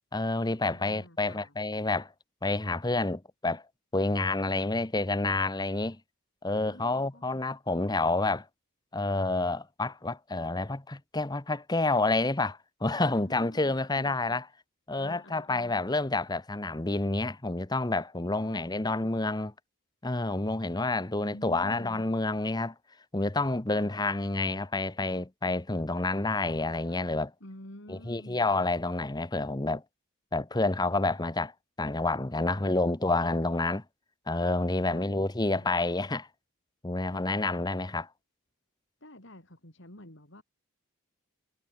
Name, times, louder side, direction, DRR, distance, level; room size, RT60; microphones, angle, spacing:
voice 1, 0.1-2.1 2.4-3.6 3.9-6.0 6.4-8.5 8.9-14.4 14.9-19.5 20.0-22.7 23.1-27.3 27.9-29.8 30.3-31.5 31.8-33.8 34.3-36.2 36.8-38.1, left 2 dB, 20° left, 0.9 m, -29 dB
voice 2, 0.6-1.5 6.6-7.4 13.1-14.4 15.0-16.0 18.4-18.6 21.2-22.1 23.7-23.9 27.4-28.5 32.5-33.0 34.9-35.1 39.0-40.4, left 1 dB, 55° left, 4.7 m, -50 dB
head